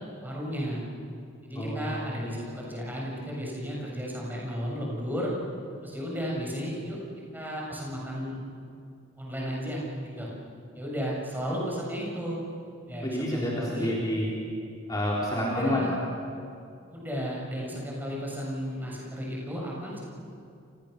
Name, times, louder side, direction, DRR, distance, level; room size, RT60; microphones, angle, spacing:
voice 1, 0.2-0.8 1.4-5.3 5.8-7.0 7.3-8.4 9.2-10.3 10.7-12.4 12.9-13.9 15.4-15.9 16.9-20.0, equal, 10° right, -3 dB, 7.3 m, -34 dB
voice 2, 1.5-2.1 13.0-14.3 14.9-15.8, equal, 20° left, -5 dB, 4.1 m, -29 dB
29.5 x 29.5 x 6.8 m, 2.5 s
head